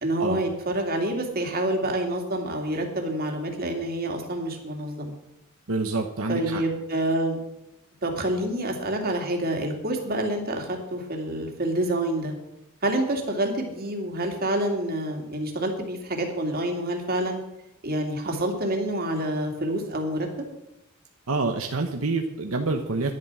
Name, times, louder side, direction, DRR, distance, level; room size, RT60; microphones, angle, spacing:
voice 1, 0.0-5.2 6.3-7.4 8.0-12.3 12.8-17.4 17.8-20.5, right 1 dB, 45° right, 2 dB, 2.5 m, -27 dB
voice 2, 5.7-6.6 21.3-23.1, right 3 dB, 80° right, 4 dB, 1.1 m, -27 dB
11.0 x 11.0 x 6.2 m, 0.88 s
head